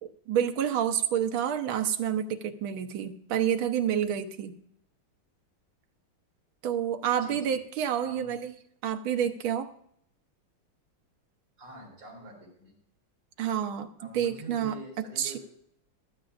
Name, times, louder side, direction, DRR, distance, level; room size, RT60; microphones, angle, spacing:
voice 1, 0.0-4.5 6.6-8.5 8.8-9.7 13.4-13.9 14.1-15.4, right 9 dB, 75° right, 7 dB, 1.7 m, -29 dB
voice 2, 7.2-7.6 8.0-8.3 11.6-12.7 14.0-15.4, right 1 dB, 60° right, -2 dB, 5.4 m, -45 dB
16.0 x 12.0 x 2.5 m, 0.69 s
omnidirectional pair, 2.3 m